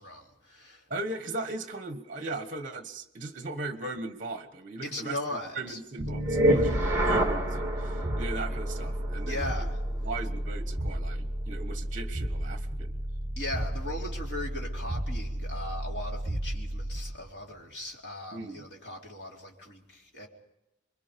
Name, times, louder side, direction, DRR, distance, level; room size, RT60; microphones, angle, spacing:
voice 1, 0.0-0.8 4.8-5.8 9.2-9.8 13.4-20.3, left 1 dB, 65° left, -1 dB, 3.8 m, -38 dB
voice 2, 0.9-9.5 10.0-12.9 18.3-18.7, right 2 dB, 45° right, 8 dB, 1.3 m, -38 dB
sound 1, 6.0-17.1, right 1 dB, 15° right, 2.2 m, -30 dB
26.5 x 22.5 x 5.3 m, 0.91 s
head